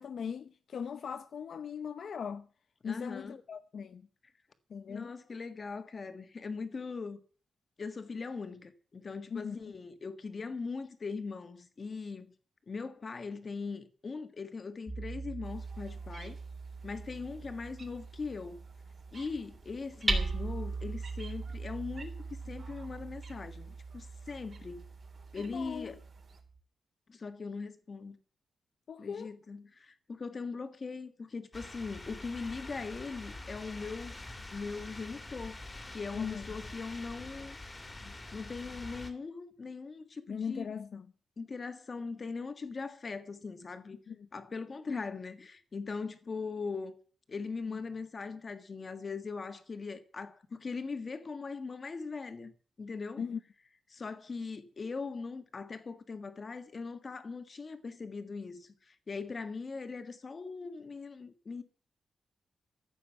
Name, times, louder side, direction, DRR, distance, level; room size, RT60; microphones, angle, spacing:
voice 1, 0.0-2.5 2.8-4.0 4.7-5.1 9.3-9.6 25.5-26.0 28.9-29.3 36.1-36.5 38.0-38.1 40.3-41.1 44.1-44.2 53.2-53.4, left 7 dB, 60° left, 0.7 m, -39 dB
voice 2, 2.8-3.4 4.9-7.2 7.8-12.3 12.7-16.4 16.8-18.6 19.1-22.1 22.4-24.9 25.3-26.0 27.1-28.2 29.0-34.2 34.5-35.6 35.9-37.6 38.3-40.7 41.4-44.0 44.3-46.9 47.3-52.5 52.8-53.2 53.9-61.6, left 4 dB, 35° left, 1.6 m, -40 dB
Hammer, 14.9-26.6, right 3 dB, 10° right, 3.0 m, -39 dB
sound 1, 15.4-26.4, right 4 dB, 45° right, 3.8 m, -58 dB
sound 2, 31.5-39.1, left 2 dB, 20° left, 2.2 m, -45 dB
14.5 x 7.4 x 9.0 m
wide cardioid pair, 155°, 0 cm